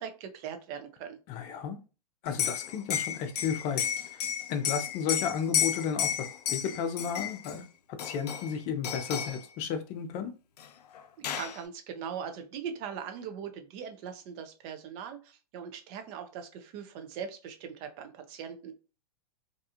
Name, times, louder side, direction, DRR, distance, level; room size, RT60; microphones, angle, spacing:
voice 1, 0.0-1.2 11.2-18.7, right 7 dB, 40° right, 7 dB, 0.6 m, -40 dB
voice 2, 1.3-1.8 2.2-3.8 4.1-4.2 4.5-10.3, left 7 dB, 35° left, 7 dB, 0.6 m, -33 dB
Liquid, 2.3-7.6 8.0-8.6 8.8-9.4 10.6-10.7 11.0-11.6, left 9 dB, 80° left, 0.4 m, -32 dB
2.6 x 2.3 x 2.8 m, 0.32 s
hypercardioid pair, 130°, 20 cm